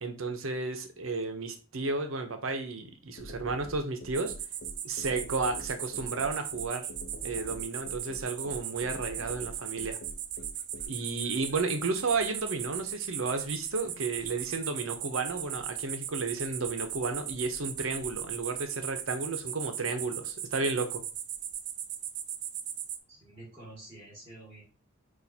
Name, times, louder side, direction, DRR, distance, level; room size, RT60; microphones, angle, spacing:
voice 1, 0.0-4.3 4.8-6.9 7.2-10.0 10.9-21.0, right 3 dB, 75° right, 6 dB, 0.8 m, -33 dB
sound 1, 3.2-10.9, left 1 dB, 50° left, 0.7 m, -44 dB
sound 2, 4.1-23.0, right 10 dB, 55° right, 0.4 m, -38 dB
voice 2, 23.1-24.6, right 1 dB, 25° right, -5 dB, 2.1 m, -48 dB
6.3 x 2.5 x 2.8 m, 0.36 s
head